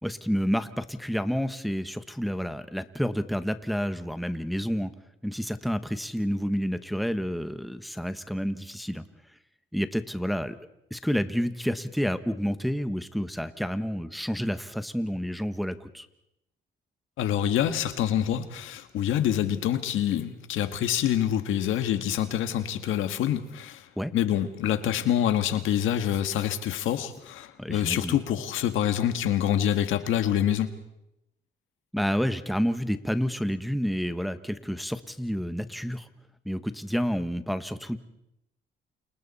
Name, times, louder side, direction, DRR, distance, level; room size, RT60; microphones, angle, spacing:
voice 1, 0.0-4.9 5.2-9.0 9.7-10.6 10.9-16.1 24.0-24.1 27.6-28.2 31.9-36.1 36.4-38.0, equal, ahead, 1.4 m, -29 dB
voice 2, 17.2-23.9 24.1-30.7, left 10 dB, 85° left, 1.7 m, -26 dB
29.5 x 28.0 x 4.3 m
cardioid pair, 90°, 20 cm